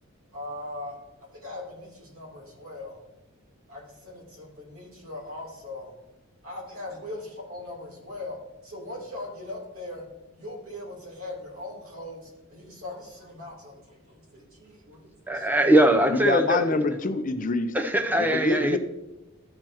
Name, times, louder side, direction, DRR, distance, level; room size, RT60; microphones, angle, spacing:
voice 1, 0.3-1.0 1.4-3.0 3.7-6.0 6.4-10.0 10.3-15.7, left 2 dB, 75° right, 3.3 m, -40 dB
voice 2, 15.3-16.7 17.7-18.8, right 1 dB, 10° right, 0.6 m, -21 dB
voice 3, 16.1-17.7 18.1-18.8, left 2 dB, 40° left, 0.6 m, -26 dB
13.5 x 6.7 x 3.0 m
head